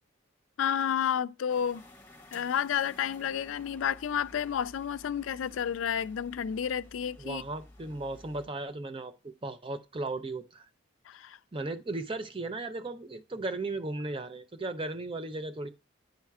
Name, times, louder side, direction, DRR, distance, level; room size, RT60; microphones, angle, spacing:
voice 1, 0.6-1.9 2.3-7.4 11.1-11.4, left 8 dB, 80° left, 0.3 m, -31 dB
sound 1, 1.5-8.5, left 1 dB, 15° left, 1.5 m, -53 dB
voice 2, 7.2-10.7 11.5-15.7, right 2 dB, 25° right, 0.5 m, -36 dB
10.5 x 4.3 x 2.3 m
head